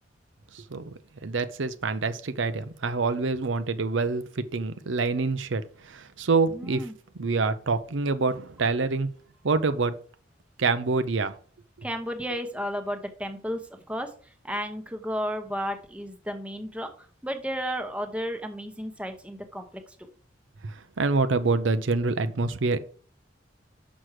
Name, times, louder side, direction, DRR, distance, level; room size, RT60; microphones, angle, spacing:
voice 1, 0.5-0.9 1.2-6.9 7.2-9.1 9.4-9.9 10.6-11.3 20.6-22.8, right 3 dB, 80° right, 0.7 m, -26 dB
voice 2, 6.5-6.9 11.8-13.6 13.9-14.1 14.4-16.9 17.2-19.7, equal, 5° right, 0.9 m, -32 dB
6.3 x 6.0 x 4.8 m
head